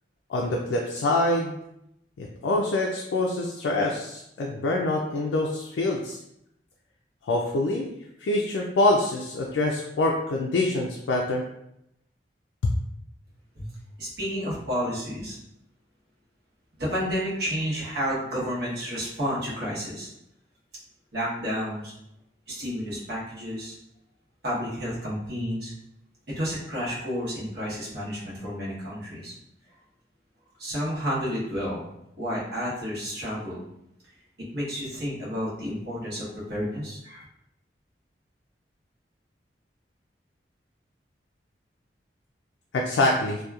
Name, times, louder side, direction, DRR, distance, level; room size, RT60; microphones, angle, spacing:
voice 1, 0.3-1.5 2.2-6.2 7.3-7.9 8.2-11.4 42.7-43.4, left 2 dB, 85° left, -1 dB, 0.3 m, -25 dB
voice 2, 14.0-15.4 16.8-20.1 21.1-21.9 22.5-23.7 24.4-25.7 26.3-29.3 30.6-31.9 32.2-33.6 34.5-37.2, equal, 60° right, -7 dB, 1.0 m, -31 dB
2.8 x 2.2 x 2.3 m, 0.81 s
head